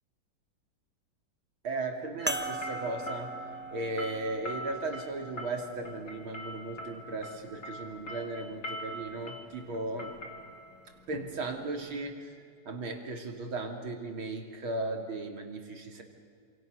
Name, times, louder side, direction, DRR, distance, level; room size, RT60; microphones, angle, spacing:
voice 1, 1.6-3.3 3.7-10.2 11.1-12.3 12.7-16.0, right 2 dB, 85° right, 4 dB, 3.6 m, -36 dB
sound 1, 2.2-12.0, equal, 50° left, 3.5 m, -43 dB
sound 2, 2.3-7.1 7.8-7.9 10.1-10.2, right 2 dB, 15° right, 0.3 m, -40 dB
27.5 x 27.5 x 6.5 m, 2.2 s
omnidirectional pair, 2.2 m